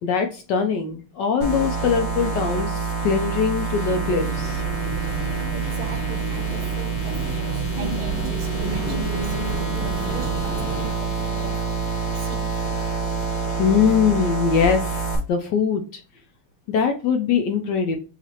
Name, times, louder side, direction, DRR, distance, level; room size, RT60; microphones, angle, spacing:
voice 1, 0.0-4.6 6.5-6.7 13.6-16.0 16.7-18.0, left 6 dB, 70° left, 1.1 m, -22 dB
sound 1, 1.4-15.2, right 4 dB, 40° left, 0.7 m, -27 dB
sound 2, 3.9-10.9, right 2 dB, 30° right, 1.6 m, -32 dB
voice 2, 5.5-11.7 12.1-12.6, right 6 dB, 80° right, 1.6 m, -40 dB
7.1 x 2.5 x 2.8 m
omnidirectional pair, 2.3 m